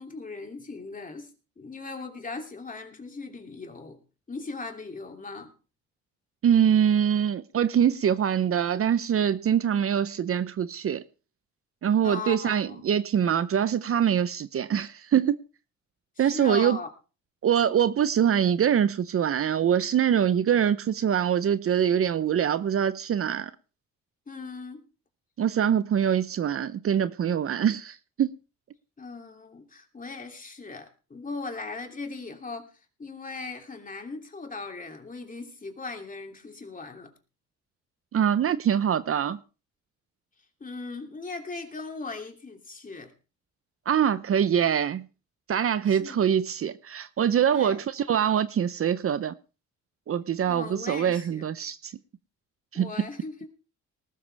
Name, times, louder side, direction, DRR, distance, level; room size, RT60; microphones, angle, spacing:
voice 1, 0.0-4.0 4.3-5.5 12.0-12.9 16.2-16.9 24.3-24.9 29.0-32.7 33.0-37.1 40.6-43.1 45.8-46.3 47.5-47.8 50.5-51.5 52.7-53.5, left 3 dB, 25° left, 2.9 m, -38 dB
voice 2, 6.4-11.0 11.8-15.4 16.2-16.8 17.4-23.5 25.4-28.3 38.1-39.4 43.9-45.1 45.5-49.3 50.1-51.9 52.7-52.9, right 9 dB, 50° right, 0.7 m, -24 dB
19.5 x 12.5 x 3.4 m
cardioid pair, 90°, 30 cm